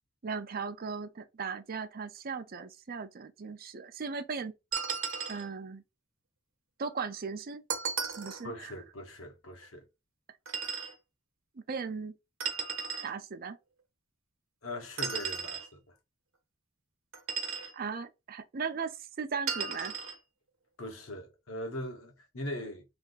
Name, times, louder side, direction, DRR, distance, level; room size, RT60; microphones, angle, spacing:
voice 1, 0.2-4.5 5.3-5.8 6.8-7.6 8.1-8.7 11.7-12.1 13.0-13.6 17.7-19.9, right 5 dB, 45° right, 0.5 m, -37 dB
sound 1, 4.7-5.5 7.7-8.4 10.5-10.9 12.4-13.1 15.0-15.7 17.1-17.7 19.5-20.2, right 6 dB, 75° right, 1.0 m, -35 dB
voice 2, 8.4-9.9 14.6-15.8 20.8-22.8, left 1 dB, 85° left, 1.2 m, -40 dB
3.4 x 2.6 x 3.9 m
head